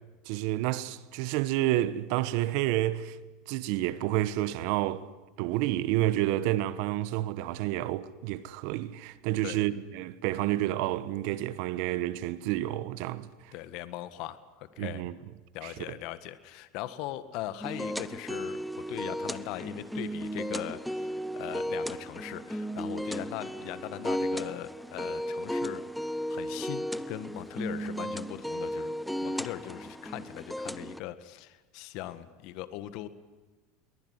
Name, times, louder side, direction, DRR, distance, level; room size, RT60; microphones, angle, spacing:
voice 1, 0.3-3.2 3.5-5.1 5.4-13.3 14.8-15.2 15.6-15.7, right 14 dB, 65° right, 1.1 m, -29 dB
voice 2, 13.5-15.0 15.5-21.1 21.3-25.8 26.3-33.1, left 14 dB, 60° left, 1.6 m, -40 dB
sound 1, 17.6-31.0, equal, ahead, 0.7 m, -35 dB
22.5 x 20.0 x 9.6 m
supercardioid pair, 125°, 0 cm